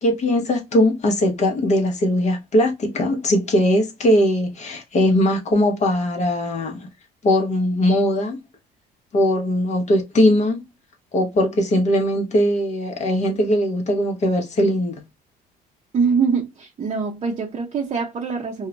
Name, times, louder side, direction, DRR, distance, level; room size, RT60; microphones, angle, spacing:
voice 1, 0.0-6.9 7.2-8.4 9.1-10.7 11.1-15.0, left 1 dB, 45° left, 0.7 m, -20 dB
voice 2, 15.9-18.7, right 5 dB, 35° right, 0.6 m, -23 dB
2.2 x 2.1 x 3.8 m
cardioid pair, 110°, 17 cm